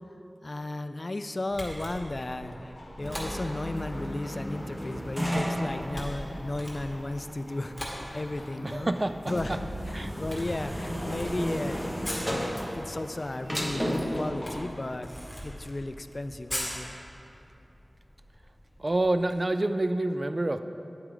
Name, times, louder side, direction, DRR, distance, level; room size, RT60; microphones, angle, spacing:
voice 1, 0.4-8.9 9.3-11.8 12.2-15.1 15.4-16.9, left 2 dB, 45° left, 10 dB, 0.3 m, -34 dB
Camera, 1.5-19.3, equal, 10° left, 2.0 m, -43 dB
sound 1, 2.4-14.7, left 1 dB, 75° left, 0.8 m, -49 dB
sound 2, 3.0-14.2, equal, 10° right, 1.2 m, -34 dB
voice 2, 8.6-9.6 9.9-10.1 18.8-20.6, right 2 dB, 40° right, 9 dB, 0.3 m, -27 dB
9.2 x 7.9 x 3.8 m, 2.8 s
wide cardioid pair, 65°, 0 cm